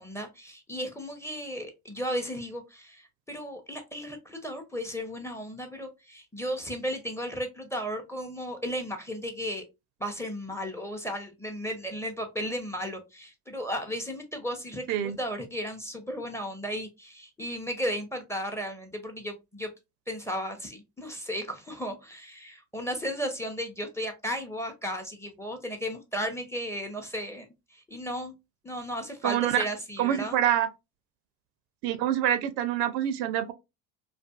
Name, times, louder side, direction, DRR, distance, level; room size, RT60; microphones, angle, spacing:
voice 1, 0.0-9.6 10.0-19.7 20.1-28.4 28.6-30.4, equal, 5° left, 0.6 m, -35 dB
voice 2, 29.2-29.6 30.0-30.7 31.8-33.5, right 11 dB, 65° right, 0.5 m, -26 dB
2.5 x 2.3 x 2.2 m
hypercardioid pair, 75°, 44 cm